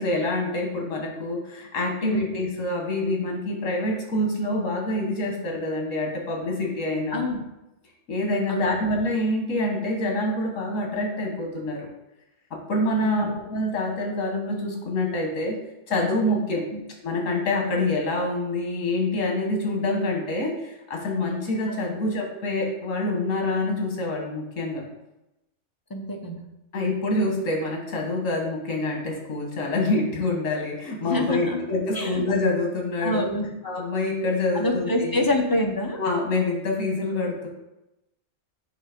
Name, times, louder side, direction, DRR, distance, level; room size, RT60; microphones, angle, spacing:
voice 1, 0.0-7.2 8.1-11.8 12.7-15.6 15.9-16.6 17.0-24.8 26.7-33.3 33.6-35.2 36.0-37.5, left 2 dB, 90° left, 0 dB, 1.6 m, -26 dB
voice 2, 2.0-2.3 7.1-7.4 8.5-8.8 13.0-13.3 16.7-16.8 25.9-26.4 31.0-31.6 31.9-32.2 33.0-33.5 34.5-36.0, left 1 dB, 25° left, 2 dB, 0.5 m, -26 dB
7.6 x 2.7 x 5.0 m, 0.92 s
omnidirectional pair, 1.3 m